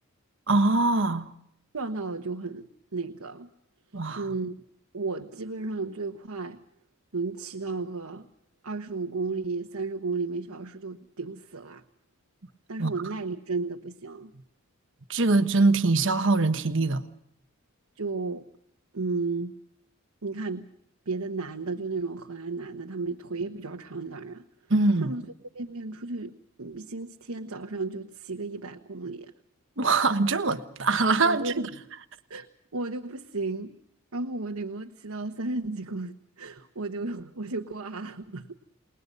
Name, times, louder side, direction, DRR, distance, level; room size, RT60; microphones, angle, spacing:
voice 1, 0.5-1.3 3.9-4.2 12.8-12.9 15.1-17.0 24.7-25.1 29.8-31.5, right 3 dB, 55° right, 1.3 m, -23 dB
voice 2, 1.7-3.5 4.1-4.5 4.9-6.6 7.1-8.3 8.6-11.8 12.7-14.3 18.0-18.4 18.9-19.5 20.2-20.7 21.1-24.4 25.0-25.2 25.5-29.3 31.2-31.7 32.3-32.5 32.7-33.7 34.1-38.5, right 3 dB, 80° right, 1.2 m, -33 dB
29.0 x 20.5 x 5.4 m
head